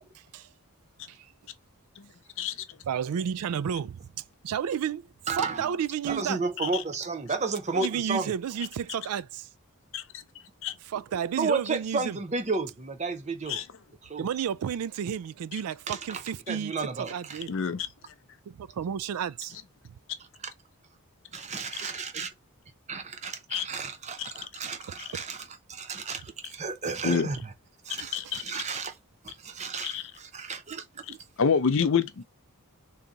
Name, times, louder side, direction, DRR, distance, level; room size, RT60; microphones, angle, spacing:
voice 1, 0.1-0.5 1.1-1.3 2.9-5.1 5.3-6.4 7.7-9.5 10.8-12.2 14.2-17.6 18.5-19.6 19.8-19.9 25.1-25.2 28.3-28.4, right 8 dB, 80° right, 0.3 m, -32 dB
voice 2, 5.3-5.8 6.1-8.3 11.4-13.6 14.0-14.3 15.9-17.4 21.3-22.3 22.9-27.5 27.8-29.0 29.2-31.2, right 4 dB, 30° right, 0.6 m, -33 dB
voice 3, 17.5-17.9 23.5-23.6 24.2-24.3 25.0-25.1 27.0-27.3 28.1-28.6 29.8-30.0 31.4-32.2, left 6 dB, 60° left, 0.5 m, -27 dB
3.6 x 2.8 x 3.9 m
head